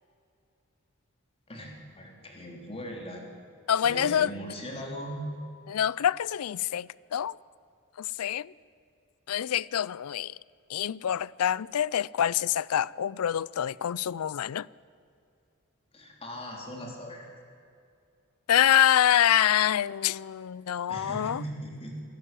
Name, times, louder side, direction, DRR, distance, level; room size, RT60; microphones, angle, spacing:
voice 1, 1.5-3.2 3.8-5.3 15.9-17.3 20.9-22.0, equal, 25° left, 3.3 m, -39 dB
voice 2, 3.7-4.3 5.7-7.4 8.0-8.5 9.3-10.4 10.7-14.7 18.5-21.4, left 10 dB, 75° left, 0.4 m, -26 dB
25.0 x 11.5 x 9.0 m
head